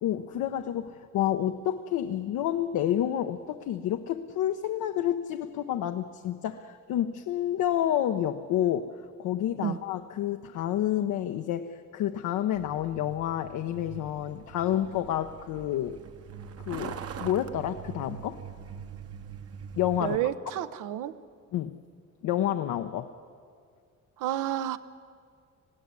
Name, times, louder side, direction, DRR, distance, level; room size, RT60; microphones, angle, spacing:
voice 1, 0.0-8.9 9.2-16.0 16.6-18.4 19.8-20.2 21.5-21.8 22.2-23.1, left 11 dB, 85° left, 7 dB, 0.8 m, -29 dB
Truck, 12.6-20.2, right 7 dB, 55° right, 1.0 m, -43 dB
voice 2, 20.0-21.1 24.2-24.8, right 12 dB, 90° right, 12 dB, 0.8 m, -30 dB
20.0 x 15.5 x 9.6 m, 2.2 s
cardioid pair, 90°, 30 cm